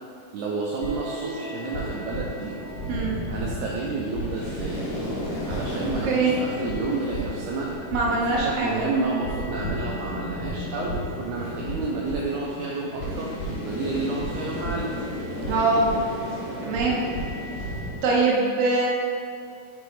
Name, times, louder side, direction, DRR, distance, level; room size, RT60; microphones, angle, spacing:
voice 1, 0.3-2.6 3.3-5.0 5.5-7.7 8.1-14.9, right 3 dB, 80° right, -4 dB, 1.8 m, -30 dB
sound 1, 0.8-17.9, right 1 dB, 90° left, 3.4 m, -35 dB
sound 2, 0.8-18.2, left 1 dB, 60° left, 1.5 m, -36 dB
voice 2, 5.8-6.3 7.9-9.1 15.4-15.9 16.6-17.0 18.0-18.9, right 3 dB, 65° right, -3 dB, 1.5 m, -23 dB
6.9 x 4.7 x 4.1 m, 2.4 s
omnidirectional pair, 4.0 m